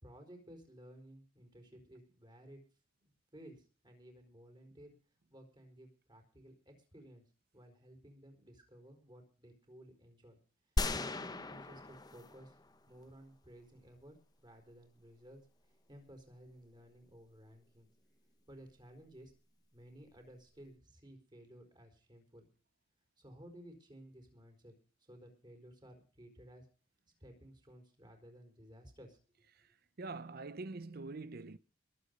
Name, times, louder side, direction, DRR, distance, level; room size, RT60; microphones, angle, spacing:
voice 1, 0.0-2.6 3.3-4.9 5.3-7.2 7.5-10.4 10.9-12.5 12.9-15.4 15.9-17.9 18.5-19.3 19.7-22.5 23.2-24.7 25.1-26.7 27.2-29.2, equal, 25° right, 4.6 m, -56 dB
sound 1, 10.8-13.0, left 2 dB, 20° left, 0.8 m, -37 dB
voice 2, 29.5-31.6, right 3 dB, 50° right, 0.7 m, -45 dB
22.0 x 8.3 x 5.3 m
head